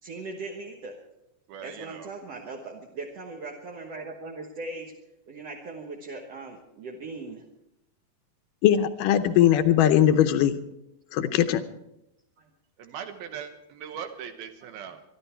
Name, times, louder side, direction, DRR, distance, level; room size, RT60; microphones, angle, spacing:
voice 1, 0.0-1.0 1.6-4.9 5.3-7.4 12.4-12.5, right 3 dB, 55° right, 0 dB, 1.9 m, -39 dB
voice 2, 1.5-2.1 12.8-15.0, right 8 dB, 85° right, 7 dB, 3.1 m, -39 dB
voice 3, 8.6-10.6 11.1-11.6, left 11 dB, 75° left, 10 dB, 2.2 m, -20 dB
25.0 x 11.5 x 4.5 m, 0.85 s
omnidirectional pair, 4.3 m